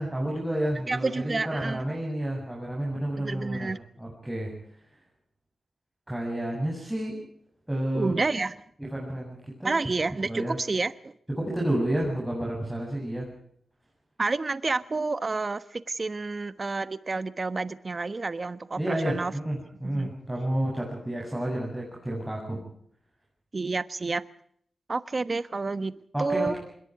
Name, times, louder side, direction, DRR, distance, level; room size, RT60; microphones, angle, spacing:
voice 1, 0.0-3.7 4.0-4.5 6.1-7.2 7.7-8.1 8.8-9.7 10.3-10.6 11.4-13.3 18.8-22.6 26.1-26.6, right 1 dB, 10° right, 7.7 m, -30 dB
voice 2, 0.9-1.8 3.2-3.8 7.9-8.5 9.6-11.1 14.2-19.3 19.8-20.1 23.5-24.2 24.9-25.9 26.2-26.5, right 3 dB, 35° right, 1.1 m, -29 dB
26.0 x 21.5 x 4.8 m
wide cardioid pair, 100°, 0 cm